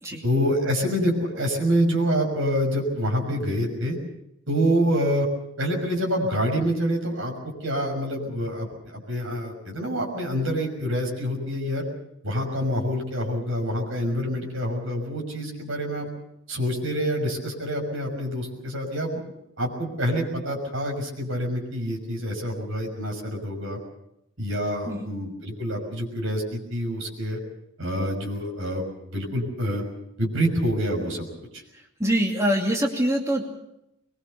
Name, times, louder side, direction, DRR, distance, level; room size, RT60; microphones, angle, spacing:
voice 1, 0.1-4.0 4.5-5.3 5.6-11.8 12.2-16.1 16.5-19.2 19.6-23.8 24.4-27.4 27.8-29.8 30.2-31.3 31.5-31.6, equal, 60° right, 1 dB, 6.2 m, -26 dB
voice 2, 31.7-33.4, equal, 15° right, 0 dB, 2.5 m, -24 dB
22.5 x 22.0 x 6.8 m, 0.83 s
head